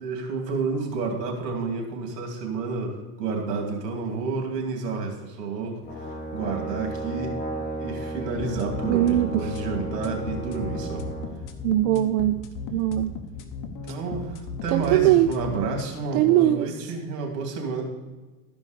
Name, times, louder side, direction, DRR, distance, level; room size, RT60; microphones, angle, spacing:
voice 1, 0.0-5.8 6.3-7.4 7.8-11.1 13.9-17.8, right 4 dB, 85° right, 2 dB, 2.7 m, -30 dB
Brass instrument, 5.8-11.3, right 1 dB, 25° left, 3.2 m, -34 dB
sound 1, 8.4-15.9, left 5 dB, 40° left, 1.2 m, -36 dB
voice 2, 8.9-9.5 11.6-12.4 12.7-13.2 14.7-15.3 16.1-16.7, right 14 dB, 70° right, 9 dB, 0.6 m, -21 dB
13.0 x 5.3 x 5.1 m, 1.2 s
supercardioid pair, 120°, 47 cm